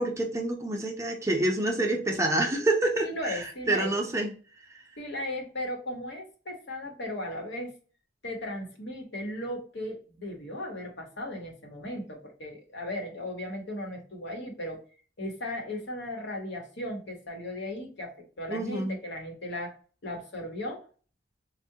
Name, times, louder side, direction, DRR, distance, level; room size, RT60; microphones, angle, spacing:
voice 1, 0.0-4.3 18.5-19.0, right 2 dB, 15° right, 2 dB, 0.6 m, -27 dB
voice 2, 3.0-4.0 5.0-7.7 8.2-14.8 15.2-19.8 20.0-20.9, left 1 dB, 65° left, 2 dB, 1.1 m, -36 dB
4.6 x 2.3 x 2.7 m, 0.38 s
head